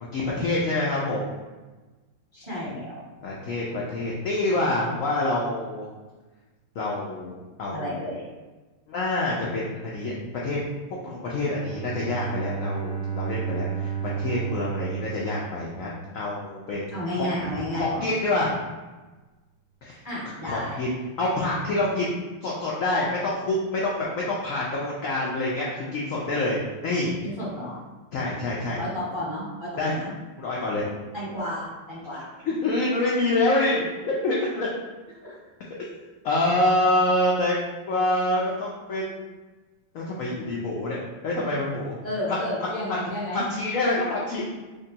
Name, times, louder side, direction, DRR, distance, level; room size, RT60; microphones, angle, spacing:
voice 1, 0.1-1.3 3.2-5.9 6.8-7.9 8.9-9.7 9.9-10.1 10.4-10.6 11.0-13.9 14.2-17.3 17.7-18.5 20.4-20.9 21.2-26.6 26.8-27.2 28.1-28.8 29.8-29.9 30.4-30.9 32.4-33.9 34.2-34.7 36.2-37.6 37.9-39.2 39.9-41.0 41.2-42.0 42.3-42.4 43.3-44.5, left 2 dB, 85° left, -5 dB, 0.7 m, -26 dB
voice 2, 2.3-3.0 7.7-8.3 16.9-18.0 20.0-20.8 27.2-27.8 28.8-30.1 31.1-32.3 35.2-35.4 42.0-43.5, left 1 dB, 25° right, -9 dB, 0.6 m, -32 dB
Bowed string instrument, 11.4-16.2, right 8 dB, 60° right, 1.3 m, -32 dB
4.9 x 2.2 x 2.7 m, 1.2 s
omnidirectional pair, 2.1 m